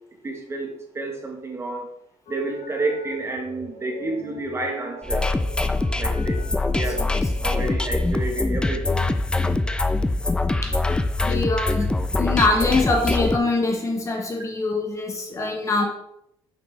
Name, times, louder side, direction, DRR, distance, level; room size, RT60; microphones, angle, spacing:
voice 1, 0.2-1.9 2.3-5.3 6.0-6.4 6.7-7.1 7.4-9.0 15.3-15.6, right 2 dB, 25° right, 2 dB, 1.2 m, -30 dB
sound 1, 2.3-7.9, equal, 65° left, 1.2 m, -41 dB
sound 2, 5.0-13.4, left 2 dB, 10° left, 0.3 m, -23 dB
voice 2, 6.7-7.3 10.6-10.7 11.2-11.9 12.2-15.9, left 3 dB, 30° left, 2 dB, 1.1 m, -24 dB
6.2 x 6.1 x 3.3 m, 0.78 s
cardioid pair, 140°, 11 cm